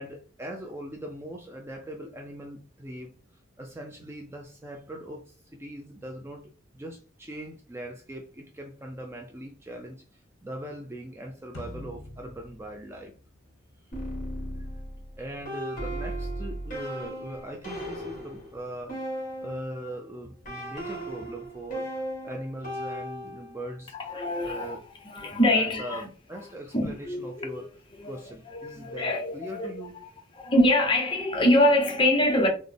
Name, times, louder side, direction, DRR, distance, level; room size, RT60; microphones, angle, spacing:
voice 1, 0.0-13.1 13.8-14.0 14.6-14.7 15.2-23.9 24.4-24.9 25.2-27.7 28.0-30.0, right 1 dB, 10° right, 0.3 m, -41 dB
sound 1, 11.5-14.0, equal, 75° left, 0.9 m, -45 dB
sound 2, 13.9-19.9 20.4-23.7, right 1 dB, 40° left, 1.7 m, -36 dB
voice 2, 23.9-24.8 25.0-26.1 26.7-27.6 28.0-28.1 28.5-29.8 30.3-32.5, left 1 dB, 25° left, 0.7 m, -24 dB
3.8 x 2.1 x 3.2 m
head